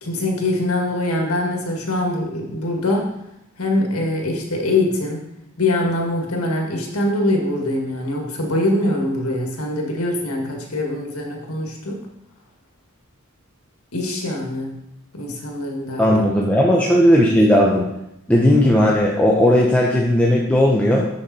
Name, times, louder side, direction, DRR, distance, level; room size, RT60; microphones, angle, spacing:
voice 1, 0.0-3.2 3.6-5.3 5.6-12.1 13.9-14.7 15.1-16.1, left 1 dB, 85° left, 1 dB, 1.8 m, -23 dB
voice 2, 16.0-17.9 18.3-21.0, equal, 5° left, -3 dB, 0.8 m, -16 dB
7.2 x 6.9 x 4.2 m, 0.83 s
head